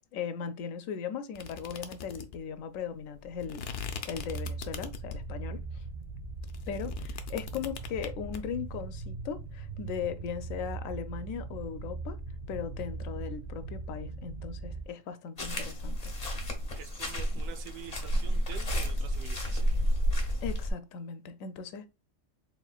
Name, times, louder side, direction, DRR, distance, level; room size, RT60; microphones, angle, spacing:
voice 1, 0.1-3.6 4.0-5.8 6.7-12.2 12.5-16.1 20.4-21.9, left 7 dB, 85° left, 1.0 m, -38 dB
sound 1, 1.3-5.4 5.8-8.4, left 6 dB, 60° left, 0.7 m, -41 dB
sound 2, 4.1-14.9, right 3 dB, 50° right, 0.7 m, -40 dB
sound 3, 15.4-20.7, equal, 35° left, 0.9 m, -30 dB
voice 2, 16.8-19.7, right 7 dB, 90° right, 1.0 m, -47 dB
4.3 x 3.5 x 2.3 m
omnidirectional pair, 1.3 m